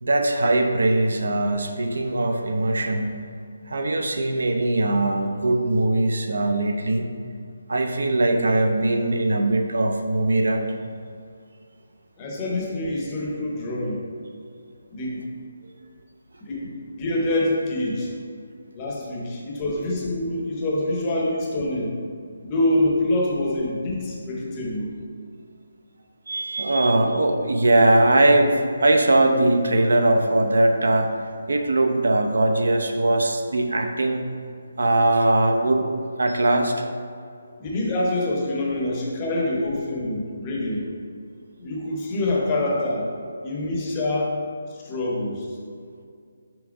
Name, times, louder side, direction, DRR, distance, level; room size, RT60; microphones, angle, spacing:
voice 1, 0.0-3.1 3.7-7.1 7.7-10.7 19.7-19.8 26.3-31.1 31.5-34.3 34.8-35.8 36.2-36.7, right 2 dB, 90° right, 5 dB, 0.7 m, -20 dB
voice 2, 12.2-14.0 14.9-15.3 16.5-18.1 18.7-22.0 22.4-24.9 37.6-40.9 41.6-43.1 43.4-44.4 44.7-45.5, left 1 dB, 15° left, -3 dB, 0.7 m, -25 dB
6.0 x 5.4 x 3.5 m, 2.3 s
hypercardioid pair, 180°, 0 cm